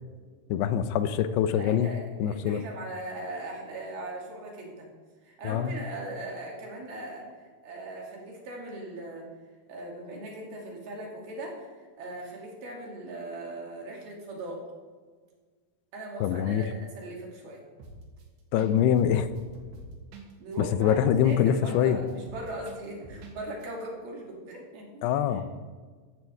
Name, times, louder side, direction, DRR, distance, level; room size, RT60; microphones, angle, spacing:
voice 1, 0.5-1.9 2.2-2.6 5.4-5.8 16.2-16.6 18.5-19.3 20.6-22.0 25.0-25.5, left 9 dB, 85° left, 11 dB, 2.8 m, -24 dB
voice 2, 1.5-4.9 5.2-9.3 9.7-14.6 15.9-17.6 20.4-25.4, right 1 dB, 70° right, -2 dB, 4.5 m, -39 dB
sound 1, 17.8-18.2 18.6-18.7 19.0-21.8 22.1-23.4 23.6-23.7, right 3 dB, 90° right, 3.8 m, -46 dB
14.5 x 14.0 x 3.5 m, 1.5 s
omnidirectional pair, 4.6 m